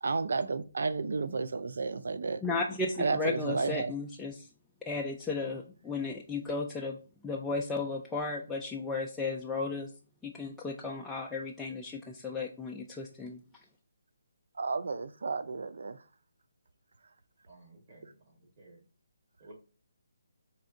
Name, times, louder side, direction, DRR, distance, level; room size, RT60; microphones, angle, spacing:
voice 1, 0.0-2.4 3.0-3.9 14.6-16.0, right 4 dB, 70° right, 0.4 m, -32 dB
voice 2, 2.4-4.5 4.9-7.0 7.2-9.9 10.2-13.4, left 3 dB, 5° left, 0.3 m, -34 dB
voice 3, 17.5-18.1 18.6-18.8 19.4-19.5, right 2 dB, 40° right, 1.7 m, -54 dB
4.3 x 2.6 x 2.6 m
hypercardioid pair, 155°, 0 cm